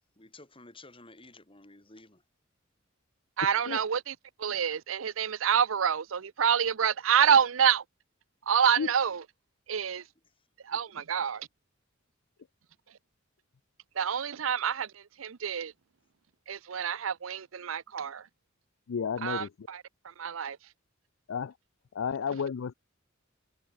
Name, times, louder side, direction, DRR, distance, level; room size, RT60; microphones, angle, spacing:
voice 1, 0.2-2.2 10.4-10.5, left 2 dB, 25° left, 7.5 m, -52 dB
voice 2, 3.4-7.8 8.5-9.2 9.7-10.0 10.6-11.5 13.9-15.7 16.5-18.3 19.2-20.6, right 7 dB, 80° right, 0.6 m, -27 dB
voice 3, 18.9-19.5 21.3-21.5 21.9-22.7, left 6 dB, 75° left, 0.4 m, -31 dB
head